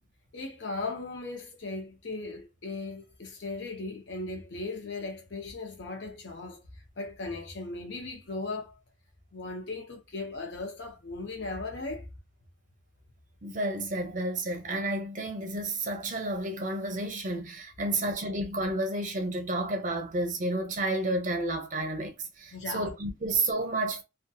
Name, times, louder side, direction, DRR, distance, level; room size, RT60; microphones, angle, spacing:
voice 1, 0.3-6.6 7.0-8.7 9.3-12.1 17.8-18.0 22.5-22.9, left 3 dB, 65° left, 0.7 m, -37 dB
voice 2, 13.4-24.0, right 2 dB, 45° right, 0.7 m, -31 dB
2.3 x 2.3 x 2.6 m
head